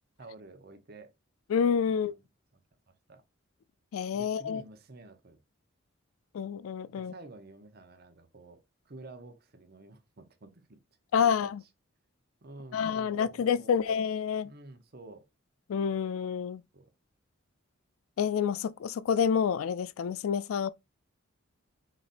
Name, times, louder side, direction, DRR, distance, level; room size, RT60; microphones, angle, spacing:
voice 1, 0.2-1.1 1.9-2.2 2.9-3.2 4.1-5.4 6.9-8.6 8.9-10.8 11.2-11.5 12.4-13.9 14.4-15.2 16.7-16.9, right 2 dB, 50° right, 0.8 m, -50 dB
voice 2, 1.5-2.1 3.9-4.6 6.3-7.1 11.1-11.6 12.7-14.5 15.7-16.6 18.2-20.7, left 7 dB, 90° left, 0.3 m, -28 dB
4.9 x 4.1 x 2.5 m
head